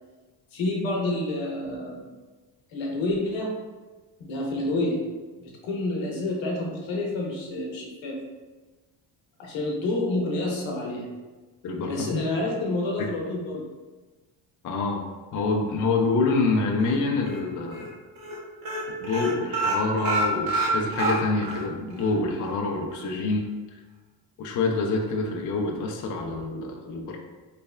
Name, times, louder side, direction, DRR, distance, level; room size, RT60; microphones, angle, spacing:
voice 1, 0.5-2.0 2.7-3.5 4.2-5.0 5.6-8.2 9.4-11.0 11.9-13.6, left 2 dB, 80° left, -1 dB, 1.0 m, -28 dB
voice 2, 11.6-12.2 13.0-13.1 14.6-15.0 15.3-17.9 19.0-23.5 24.4-27.2, left 3 dB, 45° left, 1 dB, 0.5 m, -26 dB
sound 1, 16.8-17.4 17.7-17.9 18.2-18.4 18.6-21.6 22.0-22.1 22.4-22.5, right 2 dB, 50° right, 0.9 m, -27 dB
3.3 x 3.2 x 2.2 m, 1.2 s
cardioid pair, 85°, 45 cm